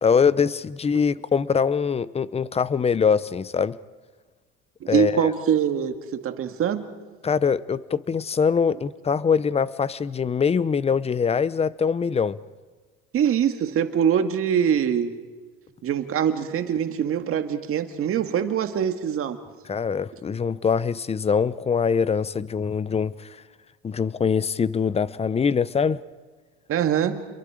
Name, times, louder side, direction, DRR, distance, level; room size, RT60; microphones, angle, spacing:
voice 1, 0.0-3.8 4.9-5.3 7.2-12.4 19.7-23.3 23.8-26.0, left 6 dB, 20° left, 18 dB, 0.7 m, -23 dB
voice 2, 4.8-6.9 13.1-15.1 15.8-19.4 26.7-27.2, right 8 dB, 50° right, 7 dB, 2.0 m, -23 dB
29.5 x 23.0 x 5.0 m, 1.4 s
supercardioid pair, 105°, 30 cm